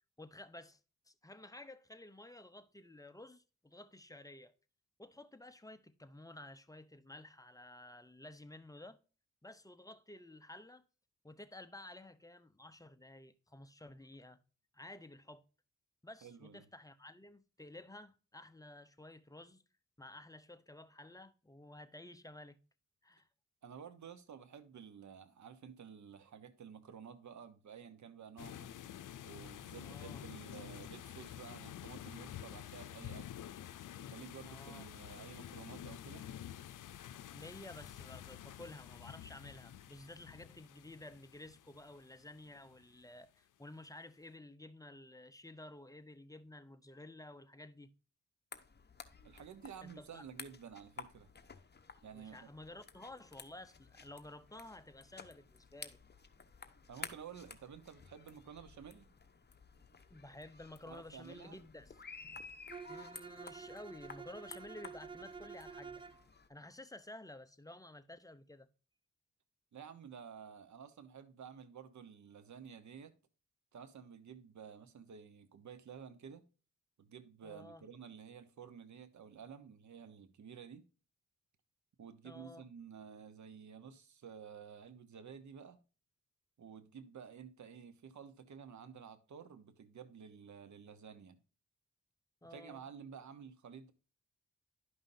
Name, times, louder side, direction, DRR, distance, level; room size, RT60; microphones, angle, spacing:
voice 1, 0.2-0.8 1.1-4.5 5.0-9.0 9.4-10.8 11.2-14.4 14.7-15.4 16.0-19.6 20.0-22.6 23.0-23.3 29.8-30.2 34.4-34.9 37.3-47.9 49.8-50.2 52.1-56.0 60.1-62.0 62.9-66.0 66.5-68.7 77.4-77.8 82.2-82.7 92.4-92.8, left 1 dB, 10° left, 0.8 m, -53 dB
voice 2, 16.2-16.7 23.6-28.7 29.2-33.3 34.0-36.3 49.2-51.3 52.0-52.5 56.9-59.1 60.9-61.6 69.7-73.2 73.7-76.4 77.0-80.9 82.0-85.8 86.6-91.4 92.5-93.9, right 7 dB, 70° right, 1.1 m, -52 dB
sound 1, 28.4-42.9, left 11 dB, 85° left, 0.6 m, -49 dB
sound 2, 48.5-66.5, left 5 dB, 35° left, 1.0 m, -54 dB
Bowed string instrument, 62.7-66.2, right 5 dB, 15° right, 0.3 m, -50 dB
11.5 x 5.5 x 2.7 m
cardioid pair, 65°, 31 cm